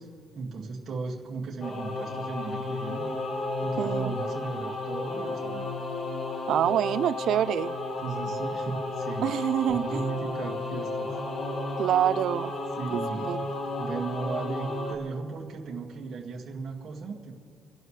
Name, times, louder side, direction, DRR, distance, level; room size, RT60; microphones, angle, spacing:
voice 1, 0.0-3.1 3.6-5.7 8.0-9.4 9.7-11.1 12.8-13.2 13.8-17.3, right 4 dB, 40° right, 1.9 m, -36 dB
Singing / Musical instrument, 1.6-15.0, left 2 dB, 35° left, 1.7 m, -33 dB
voice 2, 3.8-4.1 6.5-7.7 9.2-10.0 11.8-12.5 12.9-13.4, right 11 dB, 60° right, 0.4 m, -26 dB
29.5 x 11.5 x 3.2 m
cardioid pair, 145°, 0 cm